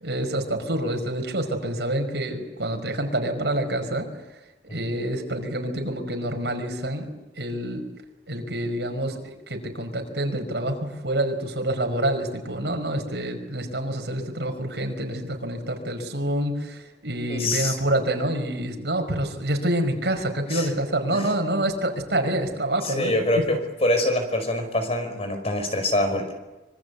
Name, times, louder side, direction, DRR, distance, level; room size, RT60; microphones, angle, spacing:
voice 1, 0.0-4.1 4.7-7.1 7.4-7.8 8.3-23.1, right 1 dB, 75° right, 5 dB, 5.2 m, -27 dB
voice 2, 17.3-17.8 20.5-20.7 21.1-21.3 22.8-26.3, left 1 dB, 35° left, 6 dB, 5.2 m, -25 dB
25.5 x 25.5 x 8.3 m, 1.1 s
head